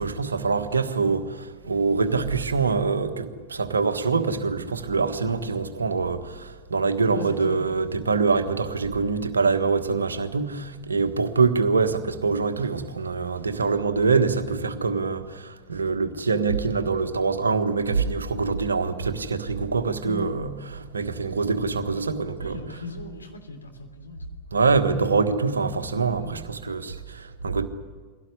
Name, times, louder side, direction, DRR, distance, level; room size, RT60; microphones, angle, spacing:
voice 1, 0.0-22.6 24.5-27.7, right 4 dB, 75° right, 1.5 m, -24 dB
voice 2, 7.0-7.6 20.0-20.3 22.4-24.2 26.2-26.4, left 2 dB, 80° left, 3.2 m, -38 dB
23.0 x 17.5 x 9.8 m
figure-of-eight pair, 90°, 0 cm